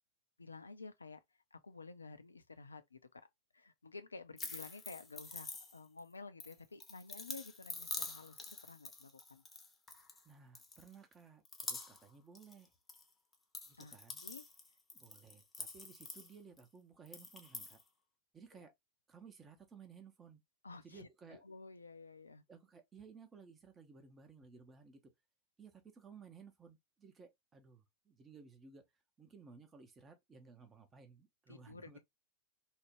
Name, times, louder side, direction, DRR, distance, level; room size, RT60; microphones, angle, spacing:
voice 1, 0.4-1.2 1.5-3.3 3.5-9.4 13.8-14.0 14.2-14.5 18.6-18.7 20.6-22.4 31.5-32.0, left 4 dB, 80° left, 0.4 m, -52 dB
sound 1, 4.4-6.0 6.4-10.2 10.5-11.1 11.4-13.0 13.3-16.6 17.1-17.8, left 3 dB, 15° left, 0.7 m, -46 dB
voice 2, 10.2-12.7 13.7-14.2 14.9-17.8 18.3-18.7 19.1-20.4 20.8-21.4 22.5-25.0 25.6-28.8 29.2-32.0, right 5 dB, 20° right, 0.7 m, -58 dB
3.1 x 2.1 x 2.9 m
figure-of-eight pair, 90°, 0 cm